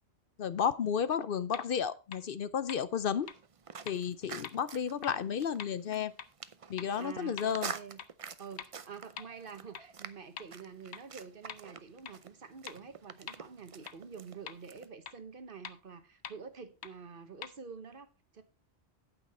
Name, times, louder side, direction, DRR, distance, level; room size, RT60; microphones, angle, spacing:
voice 1, 0.4-3.3 3.9-6.1 6.7-7.7, left 7 dB, 60° left, 0.7 m, -32 dB
sound 1, 1.5-1.6 2.1-2.2 2.7-2.8 3.3-3.4 3.9-4.0 4.4-4.5 5.0-5.1 5.6-5.7 6.2-6.3 6.8-6.9 7.4-7.5 8.0-8.1 8.6-8.7 9.2-9.3 9.7-9.8 10.4-10.5 10.9-11.0 11.5-11.6 12.0-12.1 12.7-12.8 13.3-13.4 13.9-14.0 14.5-14.6 15.1-15.2 15.6-15.7 16.2-16.3 16.8-16.9 17.4-17.5, left 9 dB, 80° left, 1.0 m, -43 dB
sound 2, 3.2-14.9, right 6 dB, 40° right, 0.6 m, -47 dB
voice 2, 7.0-8.0 8.4-18.4, right 5 dB, 55° right, 1.2 m, -48 dB
8.9 x 8.7 x 4.2 m
omnidirectional pair, 1.1 m